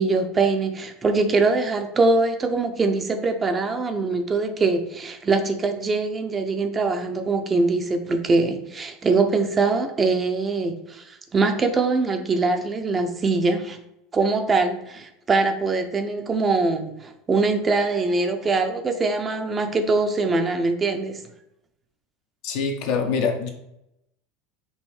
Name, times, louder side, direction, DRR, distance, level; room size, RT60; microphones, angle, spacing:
voice 1, 0.0-13.8 14.1-21.2, right 3 dB, 25° right, 6 dB, 0.6 m, -23 dB
voice 2, 22.4-23.5, left 5 dB, 65° left, 3 dB, 0.8 m, -24 dB
5.4 x 2.6 x 3.2 m, 0.82 s
hypercardioid pair, 90°, 0 cm